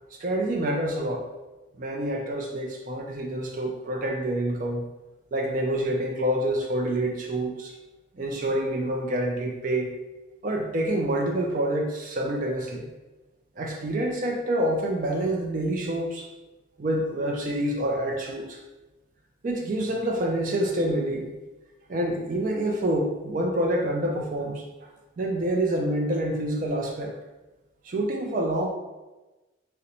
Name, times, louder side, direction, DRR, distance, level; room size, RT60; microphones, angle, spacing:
voice 1, 0.1-1.3 1.8-4.8 5.3-7.7 8.2-9.9 10.4-12.9 13.6-16.3 16.8-18.6 19.4-21.3 21.9-24.6 25.2-27.1 27.8-28.7, right 1 dB, 45° right, 1 dB, 0.4 m, -27 dB
3.9 x 2.1 x 2.8 m, 1.1 s
head